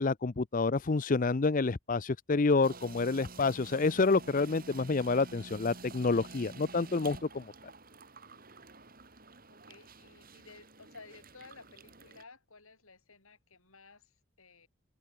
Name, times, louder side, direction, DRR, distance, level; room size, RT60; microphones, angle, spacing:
voice 1, 0.0-7.5, left 3 dB, 35° left, 0.5 m, -28 dB
sound 1, 2.6-12.2, right 3 dB, 40° right, 6.3 m, -50 dB
voice 2, 9.5-14.1 14.4-14.7, left 4 dB, 70° left, 4.8 m, -55 dB
head